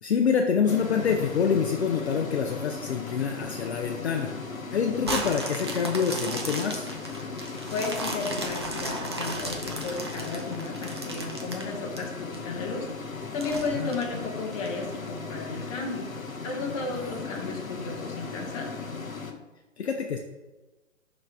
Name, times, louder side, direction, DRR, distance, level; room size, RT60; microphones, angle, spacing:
voice 1, 0.0-4.3 4.7-6.9 13.7-13.9 16.9-17.2 19.8-20.2, left 6 dB, 55° left, 3 dB, 0.7 m, -26 dB
sound 1, 0.7-19.3, left 4 dB, 85° left, 0.9 m, -37 dB
sound 2, 5.1-12.4 12.8-12.9 13.4-14.7 15.2-15.3, right 2 dB, 20° right, 0.4 m, -35 dB
voice 2, 7.4-16.1 16.4-18.7, left 3 dB, 25° left, 0 dB, 1.1 m, -34 dB
6.4 x 3.2 x 4.7 m, 1.1 s
figure-of-eight pair, 125°, 40 cm